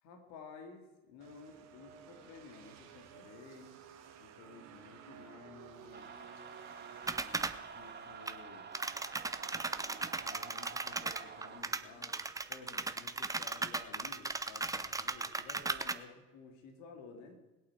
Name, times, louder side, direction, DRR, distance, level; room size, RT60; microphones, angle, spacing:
voice 1, 0.0-3.8 4.2-6.1 7.1-8.7 10.2-12.2 12.5-17.3, left 4 dB, 70° left, 4 dB, 2.4 m, -54 dB
sound 1, 1.2-14.2, right 8 dB, 60° right, 2.0 m, -56 dB
sound 2, 5.9-11.6, right 5 dB, 35° right, 2.1 m, -49 dB
Typewriter typing test (typewriter turned off), 7.1-7.6 8.2-8.3 8.7-15.9, right 3 dB, 10° right, 0.8 m, -37 dB
21.0 x 8.6 x 4.6 m, 1.1 s
hypercardioid pair, 60°, 30 cm